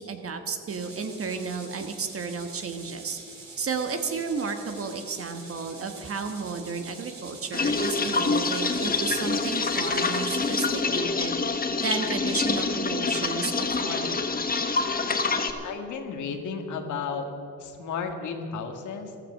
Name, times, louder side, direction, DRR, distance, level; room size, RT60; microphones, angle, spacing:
voice 1, 0.0-3.2 3.6-11.4 11.8-14.2, right 5 dB, 50° right, 6 dB, 1.4 m, -32 dB
sound 1, 0.7-10.7, right 3 dB, 65° right, 3.9 m, -45 dB
sound 2, 7.5-15.5, left 4 dB, 30° left, 1.3 m, -26 dB
voice 2, 15.6-17.3 17.6-19.1, left 5 dB, 75° left, 5 dB, 1.8 m, -33 dB
15.0 x 13.0 x 6.5 m, 2.7 s
cardioid pair, 90°, 30 cm